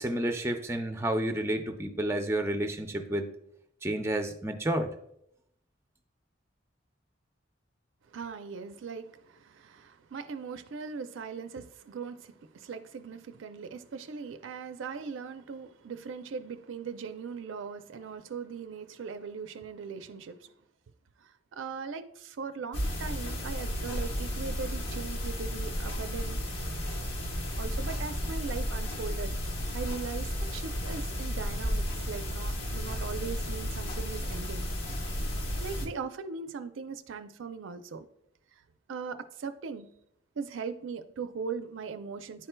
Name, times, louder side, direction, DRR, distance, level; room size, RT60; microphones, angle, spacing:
voice 1, 0.0-3.3 3.8-4.9, right 1 dB, 15° right, 5 dB, 0.4 m, -30 dB
voice 2, 8.1-20.5 21.2-26.4 27.6-29.4 29.7-34.7 35.6-38.1 38.9-39.9 40.4-42.5, right 5 dB, 75° right, 10 dB, 0.4 m, -39 dB
Living room tone with clock ticking, 22.7-35.9, equal, 80° left, 1.1 m, -33 dB
10.0 x 4.4 x 2.2 m, 0.74 s
head